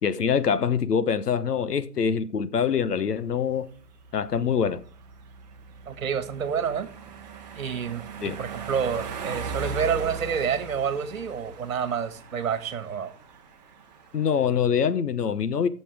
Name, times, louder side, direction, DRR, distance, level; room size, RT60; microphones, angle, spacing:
voice 1, 0.0-3.7 4.1-4.8 8.2-8.4 14.1-15.7, left 7 dB, 80° left, 1.1 m, -24 dB
sound 1, 2.7-14.5, right 4 dB, 25° right, 1.2 m, -39 dB
voice 2, 5.9-6.9 7.6-8.0 8.4-13.1, right 7 dB, 60° right, 1.7 m, -28 dB
16.5 x 6.9 x 3.5 m
hypercardioid pair, 155°, 47 cm